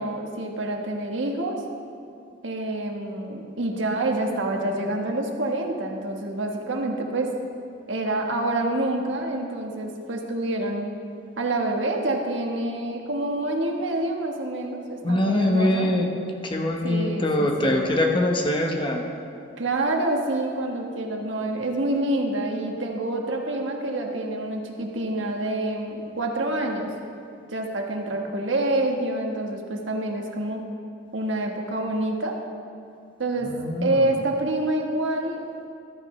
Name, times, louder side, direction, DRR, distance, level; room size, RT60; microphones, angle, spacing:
voice 1, 0.0-1.6 2.4-7.3 7.9-10.9 11.4-15.9 16.8-17.9 19.6-26.9 27.5-30.6 31.1-32.4 33.2-33.5 33.8-35.4, right 2 dB, 90° right, 2 dB, 1.4 m, -27 dB
voice 2, 15.0-16.1 16.4-19.1 33.4-34.1, left 1 dB, 25° left, 2 dB, 1.0 m, -23 dB
14.5 x 13.0 x 3.2 m, 2.5 s
head